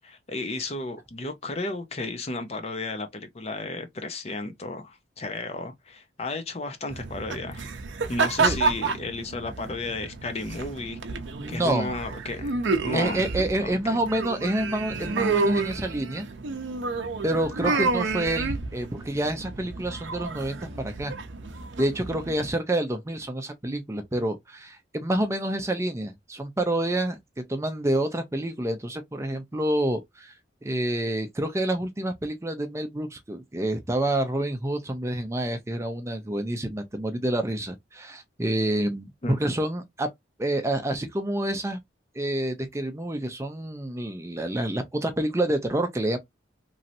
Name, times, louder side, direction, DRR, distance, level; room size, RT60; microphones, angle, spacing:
voice 1, 0.0-7.7 8.1-11.0 11.5-13.2 13.6-14.0 17.6-17.9 39.2-39.4, left 2 dB, 35° left, 0.5 m, -33 dB
sound 1, 6.9-22.5, right 4 dB, 80° right, 0.6 m, -30 dB
voice 2, 11.4-11.9 12.9-16.3 17.2-21.1 21.8-30.3 30.6-40.1 40.4-41.8 42.2-46.2, right 1 dB, 15° right, 0.5 m, -28 dB
3.1 x 2.7 x 2.6 m
head